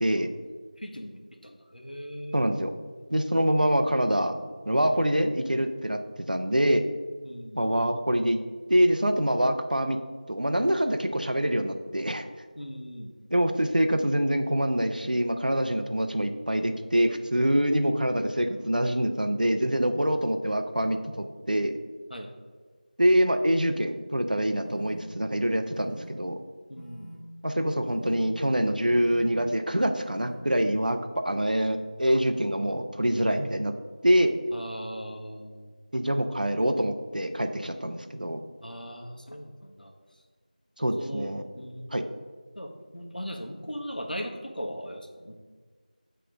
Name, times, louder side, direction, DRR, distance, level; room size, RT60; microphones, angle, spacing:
voice 1, 0.8-2.6 7.2-7.6 12.6-13.1 22.1-22.3 26.7-27.1 34.5-35.7 38.6-39.9 41.0-42.0 42.5-45.4, equal, 80° left, 2 dB, 1.1 m, -39 dB
voice 2, 2.3-2.7 3.1-4.4 4.7-6.0 6.3-6.8 7.5-8.4 8.7-10.0 10.3-12.3 13.3-21.7 23.0-26.4 27.4-33.7 34.0-34.3 35.9-38.4 40.8-41.4 41.9-42.0, equal, 70° right, 7 dB, 0.6 m, -25 dB
sound 1, 24.6-25.0 25.7-26.1 26.7-27.1 27.8-28.2 28.9-29.3 29.9-30.3, right 1 dB, 5° right, 1.8 m, -46 dB
7.6 x 3.3 x 5.0 m, 1.5 s
figure-of-eight pair, 180°, 5 cm